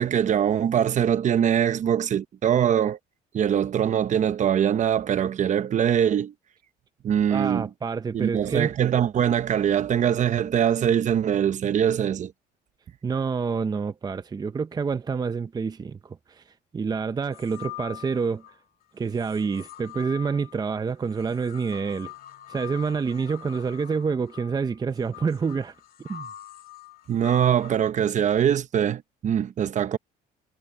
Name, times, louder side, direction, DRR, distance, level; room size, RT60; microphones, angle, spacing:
voice 1, 0.0-3.0 3.3-6.3 7.0-7.7 8.1-12.3 27.1-30.0, right 9 dB, 45° right, 1.0 m, -23 dB
voice 2, 7.3-8.7 13.0-16.4 16.7-18.4 18.9-22.1 22.5-25.7 26.1-26.3, right 5 dB, 25° right, 0.7 m, -28 dB
sound 1, 17.3-18.6 19.1-27.7, left 14 dB, 60° left, 1.9 m, -44 dB
cardioid pair, 110°, 17 cm